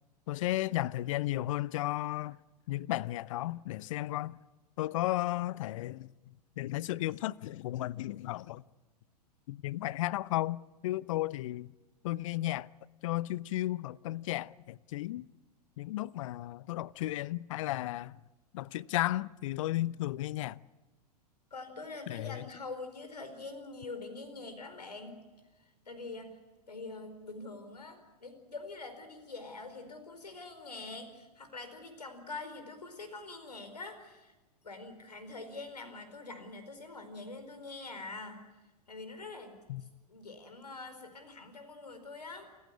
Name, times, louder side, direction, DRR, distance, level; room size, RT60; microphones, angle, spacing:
voice 1, 0.3-2.4 2.7-4.4 4.8-6.1 6.6-8.6 9.5-11.7 12.0-12.7 13.0-15.3 15.8-18.2 18.5-20.6 22.1-22.4 39.7-39.8, left 16 dB, 50° left, 0.7 m, -34 dB
voice 2, 21.5-25.2 25.6-26.4 26.7-34.3 34.6-38.4 38.9-39.6 40.1-42.5, left 3 dB, 80° left, 4.7 m, -44 dB
28.5 x 15.5 x 9.7 m
figure-of-eight pair, 100°, 20 cm